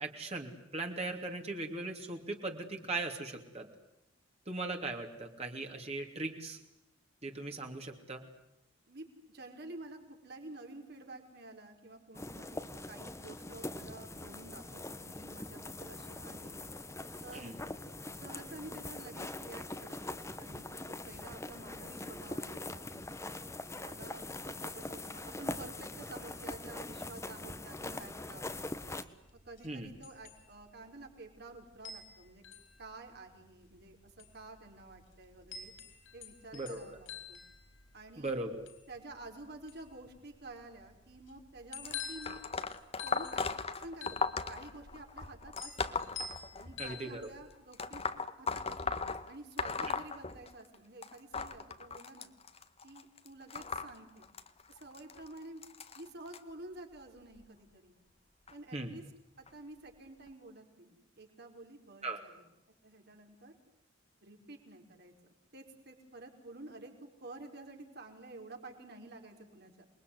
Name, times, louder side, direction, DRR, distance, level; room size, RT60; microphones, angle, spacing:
voice 1, 0.0-3.7 4.5-6.6 7.2-8.2 17.3-17.5 29.6-29.9 36.5-36.8 38.2-38.6 46.8-47.3 58.7-58.9 62.0-62.2, right 2 dB, 35° right, 3 dB, 3.0 m, -39 dB
voice 2, 9.3-16.6 17.2-17.5 18.1-23.0 23.8-28.8 29.4-32.4 32.8-35.7 36.1-37.4 37.9-38.5 38.9-42.4 43.0-46.0 46.6-48.0 48.4-52.3 52.8-54.3 54.7-55.6 55.9-58.0 58.5-59.0 59.4-62.5 62.8-63.5 64.2-65.1 65.5-66.9 67.2-69.8, right 2 dB, 55° right, 3 dB, 5.1 m, -50 dB
sound 1, 12.1-29.0, left 2 dB, 15° left, 1.4 m, -43 dB
sound 2, 28.4-47.6, left 6 dB, 75° left, 4.8 m, -49 dB
sound 3, 41.8-47.0 47.7-50.8 51.0-56.4 57.2-57.4 58.5-58.6 59.5-59.6 60.3-60.4, left 4 dB, 30° left, 1.5 m, -38 dB
28.0 x 22.0 x 9.6 m, 0.87 s
head